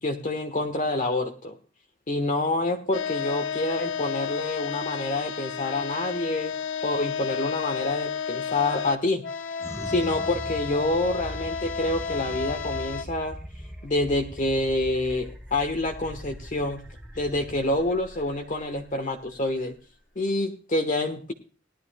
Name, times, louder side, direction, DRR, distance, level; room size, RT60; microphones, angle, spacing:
voice 1, 0.0-1.5 2.1-6.5 6.8-9.2 9.8-13.4 13.8-16.8 17.1-19.8 20.1-21.3, left 2 dB, 45° left, 3 dB, 1.3 m, -27 dB
sound 1, 2.9-13.0, left 6 dB, 75° left, 1.0 m, -32 dB
sound 2, 9.6-20.3, equal, 5° right, 1.2 m, -41 dB
19.5 x 12.0 x 2.3 m, 0.37 s
head